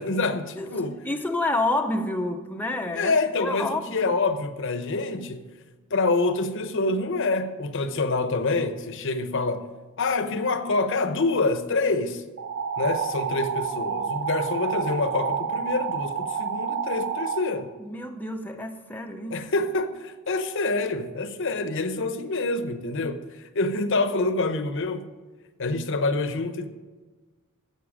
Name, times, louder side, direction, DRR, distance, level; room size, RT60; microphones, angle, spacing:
voice 1, 0.0-1.0 2.9-5.5 5.9-9.7 10.0-12.2 12.8-17.7 19.3-25.1 25.6-26.7, left 3 dB, 60° left, 0.9 m, -26 dB
voice 2, 1.0-3.1 3.4-4.1 17.8-19.5, left 2 dB, 10° left, 0.6 m, -29 dB
sound 1, 12.4-17.4, right 6 dB, 45° right, 1.4 m, -29 dB
14.0 x 8.0 x 5.0 m
head